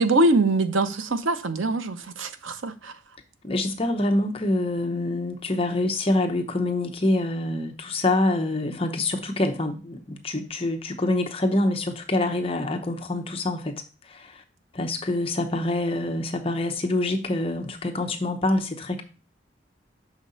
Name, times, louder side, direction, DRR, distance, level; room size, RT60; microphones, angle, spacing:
voice 1, 0.0-2.9, right 2 dB, 85° right, 0.8 m, -23 dB
voice 2, 3.4-13.8 14.1-14.4 14.7-19.0, left 2 dB, 30° left, 0.8 m, -26 dB
6.4 x 5.2 x 4.0 m
head